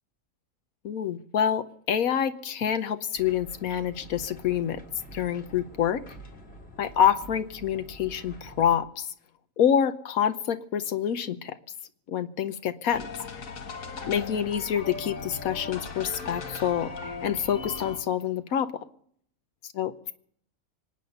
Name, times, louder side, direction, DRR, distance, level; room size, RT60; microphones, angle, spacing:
voice 1, 0.8-4.8 5.1-6.0 6.8-9.1 9.6-11.5 12.1-13.0 14.1-18.7 19.7-19.9, left 9 dB, 90° left, 10 dB, 1.3 m, -27 dB
sound 1, 3.1-8.8, right 1 dB, 50° left, 2.2 m, -47 dB
sound 2, 12.9-18.0, left 4 dB, 70° left, 1.7 m, -38 dB
25.5 x 8.7 x 5.4 m, 0.65 s
omnidirectional pair, 1.4 m